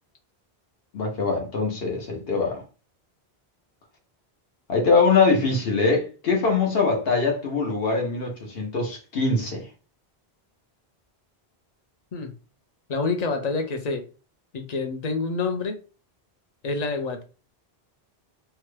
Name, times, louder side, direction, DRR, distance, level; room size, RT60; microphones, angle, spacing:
voice 1, 0.9-2.6 4.7-9.7, left 4 dB, 65° left, 1.1 m, -23 dB
voice 2, 12.9-14.0 14.5-15.8 16.6-17.2, left 3 dB, 50° left, 0.6 m, -27 dB
2.9 x 2.2 x 3.2 m
omnidirectional pair, 1.1 m